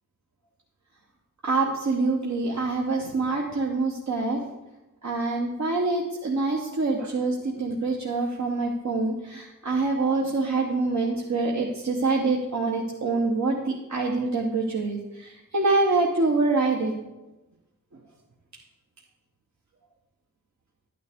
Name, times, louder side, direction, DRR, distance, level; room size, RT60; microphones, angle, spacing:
voice 1, 1.4-4.4 5.0-16.9, right 3 dB, 60° right, -1 dB, 1.2 m, -25 dB
11.5 x 9.3 x 3.6 m, 1.0 s
wide cardioid pair, 75°, 32 cm